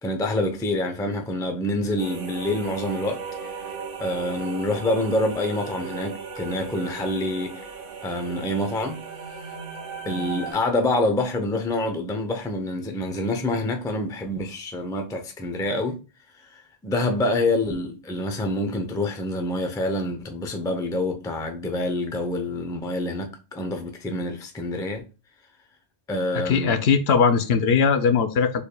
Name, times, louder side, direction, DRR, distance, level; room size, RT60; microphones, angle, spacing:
voice 1, 0.0-3.2 4.0-7.6 8.0-9.0 10.1-16.0 16.5-25.0 26.1-26.8, left 1 dB, 5° left, 0.4 m, -26 dB
sound 1, 2.0-10.6, right 5 dB, 55° right, 0.8 m, -36 dB
voice 2, 26.3-28.6, left 6 dB, 70° left, 0.8 m, -20 dB
6.9 x 3.3 x 2.2 m
omnidirectional pair, 1.2 m